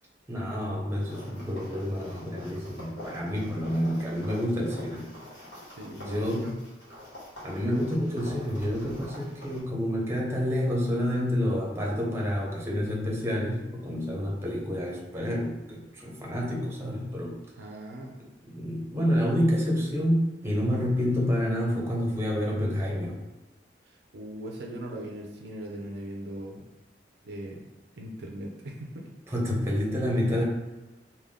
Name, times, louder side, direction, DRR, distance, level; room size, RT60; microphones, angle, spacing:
voice 1, 0.3-5.0 6.1-6.4 7.4-17.4 18.5-23.2 29.3-30.4, equal, 15° right, -3 dB, 0.8 m, -28 dB
sound 1, 1.0-9.6, left 1 dB, 65° left, 1.5 m, -45 dB
voice 2, 5.7-6.5 17.6-18.2 24.1-26.7 27.2-27.6 27.9-29.1, right 1 dB, 65° right, 1 dB, 0.5 m, -39 dB
3.5 x 2.3 x 3.6 m, 1.1 s
head